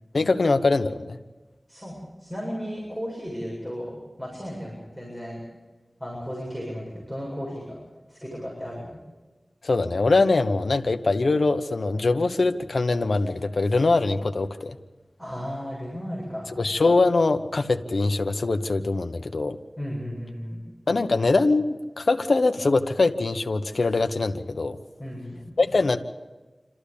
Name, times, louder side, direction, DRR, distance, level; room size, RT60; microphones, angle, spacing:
voice 1, 0.1-1.2 9.6-14.8 16.6-19.6 20.9-24.8 25.6-26.0, left 3 dB, 80° left, 7 dB, 1.1 m, -22 dB
voice 2, 1.7-5.4 6.0-7.6 8.1-8.9 15.2-16.6 19.8-20.6 25.0-25.5, equal, 10° right, -4 dB, 7.6 m, -34 dB
27.0 x 13.5 x 8.6 m, 1.2 s
wide cardioid pair, 60°, 0 cm